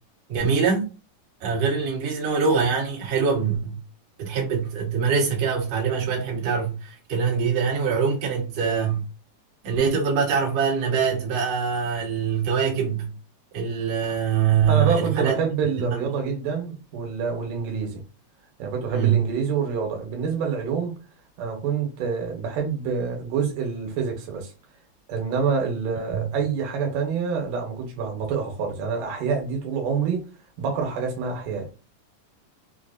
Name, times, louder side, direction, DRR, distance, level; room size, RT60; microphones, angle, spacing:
voice 1, 0.3-0.9 1.4-3.8 4.2-9.0 9.6-13.1 13.5-15.4 15.8-16.1 18.9-19.3 26.1-26.3, right 6 dB, 60° right, 2.1 m, -23 dB
voice 2, 14.7-18.0 18.6-20.9 21.4-24.5 25.1-30.2 30.6-31.7, right 6 dB, 85° right, 2.5 m, -27 dB
5.5 x 2.0 x 2.4 m
omnidirectional pair, 3.7 m